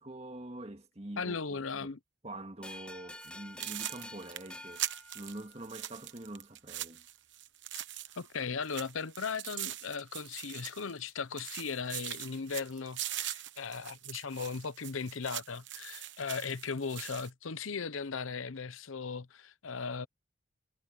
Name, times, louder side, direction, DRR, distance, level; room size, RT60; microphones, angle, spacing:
voice 1, 0.0-1.9 2.2-7.0, right 1 dB, 30° right, 2.0 m, -45 dB
voice 2, 1.2-2.0 8.2-20.1, left 5 dB, 85° left, 0.8 m, -37 dB
sound 1, 2.6-5.9, left 1 dB, 5° left, 0.5 m, -49 dB
sound 2, 3.1-3.3 3.6-8.3 8.6-11.1 11.4-17.3, right 13 dB, 60° right, 1.1 m, -42 dB
head